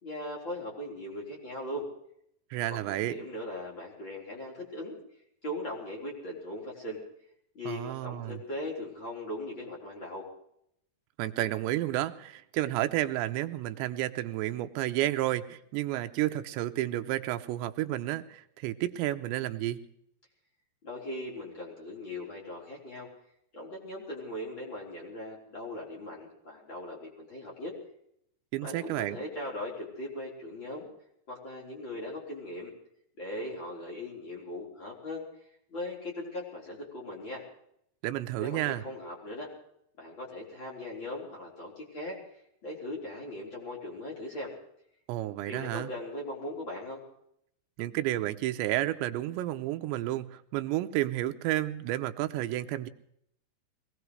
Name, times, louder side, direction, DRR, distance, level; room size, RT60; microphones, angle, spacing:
voice 1, 0.0-1.9 2.7-5.0 5.4-7.0 7.5-10.3 20.8-23.1 23.5-27.7 28.6-30.9 31.3-32.7 33.2-35.2 35.7-37.4 38.4-39.5 40.0-42.2 42.6-44.5 45.5-47.0, left 1 dB, 25° left, -3 dB, 4.5 m, -39 dB
voice 2, 2.5-3.2 7.7-8.4 11.2-19.8 28.5-29.2 38.0-38.8 45.1-45.9 47.8-52.9, right 15 dB, 85° right, 7 dB, 3.0 m, -31 dB
23.0 x 19.0 x 3.2 m, 0.72 s
omnidirectional pair, 5.0 m